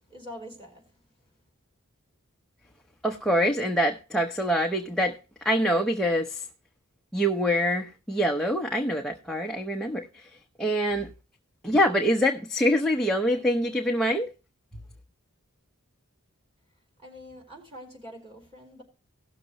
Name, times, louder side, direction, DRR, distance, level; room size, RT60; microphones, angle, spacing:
voice 1, 0.1-1.0 17.0-18.8, equal, 25° right, 3.8 m, -45 dB
voice 2, 3.0-5.1 5.4-6.4 7.1-10.3 10.6-11.1 11.6-14.3, equal, 5° left, 0.8 m, -25 dB
18.0 x 6.7 x 3.0 m
head